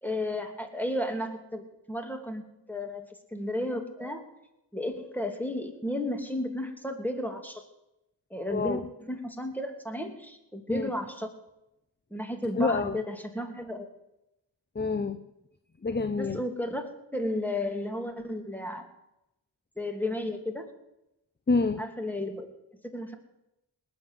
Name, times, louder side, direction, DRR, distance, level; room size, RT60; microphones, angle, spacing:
voice 1, 0.0-4.2 4.7-7.6 8.3-11.3 12.1-13.9 16.2-18.8 19.8-20.6 21.8-22.5 22.9-23.1, left 1 dB, 5° left, 4 dB, 2.9 m, -33 dB
voice 2, 8.5-8.8 10.7-10.9 12.6-13.0 14.7-15.2 15.8-16.4 21.5-21.8, left 3 dB, 25° left, 11 dB, 0.9 m, -27 dB
19.0 x 7.4 x 9.8 m, 0.90 s
cardioid pair, 45°, 44 cm